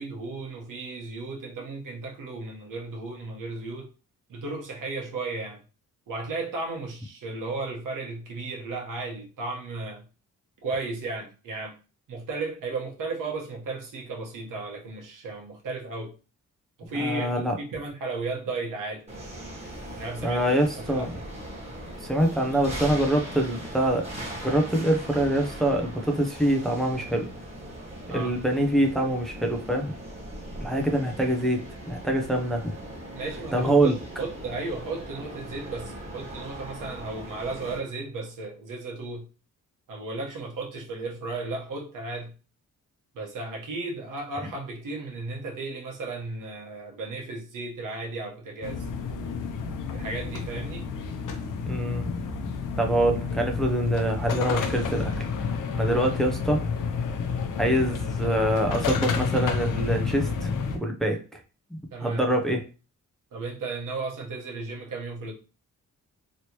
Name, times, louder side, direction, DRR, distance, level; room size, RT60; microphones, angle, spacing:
voice 1, 0.0-3.9 4.3-5.6 6.1-10.0 10.6-11.7 12.1-16.1 16.8-19.0 19.9-21.1 28.1-28.3 33.1-39.2 39.9-42.3 43.1-48.8 49.9-50.9 61.9-62.2 63.3-65.3, right 3 dB, 85° right, 1.2 m, -34 dB
voice 2, 16.9-17.5 20.2-21.1 22.0-27.3 28.1-29.9 30.6-32.7 33.5-34.0 51.7-52.1 52.8-55.3 55.8-56.7 57.6-60.5 60.8-61.4 61.7-62.6, right 1 dB, ahead, 0.5 m, -25 dB
sound 1, 19.1-37.8, right 1 dB, 20° right, 1.5 m, -39 dB
sound 2, 48.6-60.8, left 5 dB, 80° left, 0.7 m, -30 dB
3.2 x 2.9 x 2.9 m
cardioid pair, 115°, 31 cm